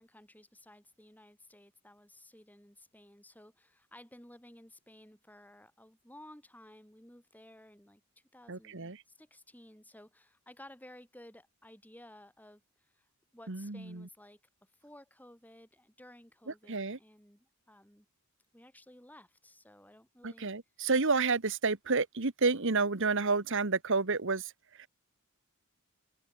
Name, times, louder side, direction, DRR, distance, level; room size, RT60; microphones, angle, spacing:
voice 1, 0.0-8.0 8.3-13.1 13.3-18.1 18.5-20.5, left 1 dB, 10° left, 7.9 m, -56 dB
voice 2, 8.5-9.0 13.5-14.1 16.7-17.0 20.2-24.5 24.8-24.9, right 4 dB, 60° right, 1.5 m, -30 dB
head